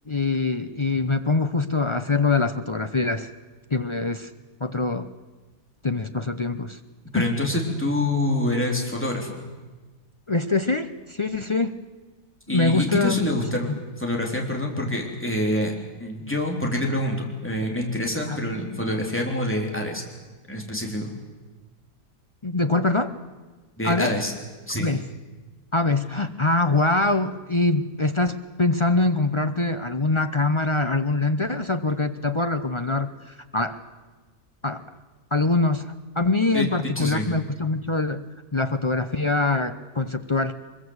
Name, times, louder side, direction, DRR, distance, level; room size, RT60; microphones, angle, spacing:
voice 1, 0.1-3.3 3.7-4.3 4.6-5.1 5.8-6.8 7.1-7.3 10.3-11.8 12.5-13.3 13.7-13.8 18.3-18.4 22.4-23.1 23.8-24.1 24.8-25.0 25.7-33.1 33.5-33.8 34.6-34.8 35.3-38.2 38.5-40.5, left 3 dB, 45° left, 9 dB, 0.4 m, -24 dB
voice 2, 7.1-9.4 12.5-15.7 16.0-20.0 20.5-21.1 23.8-24.3 24.7-24.9 36.5-36.7 37.0-37.4, left 1 dB, 5° left, 0 dB, 3.6 m, -26 dB
23.5 x 22.0 x 8.1 m, 1.3 s
omnidirectional pair, 1.7 m